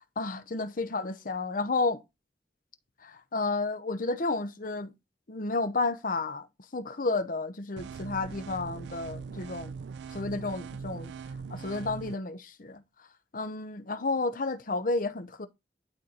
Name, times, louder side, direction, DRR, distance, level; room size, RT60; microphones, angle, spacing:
voice 1, 0.2-2.0 3.0-4.9 5.3-6.5 6.7-9.7 10.1-11.1 11.5-12.8 13.3-15.5, left 3 dB, 50° left, 0.8 m, -31 dB
sound 1, 7.8-12.1, right 5 dB, 70° right, 0.3 m, -41 dB
11.5 x 3.9 x 2.9 m
head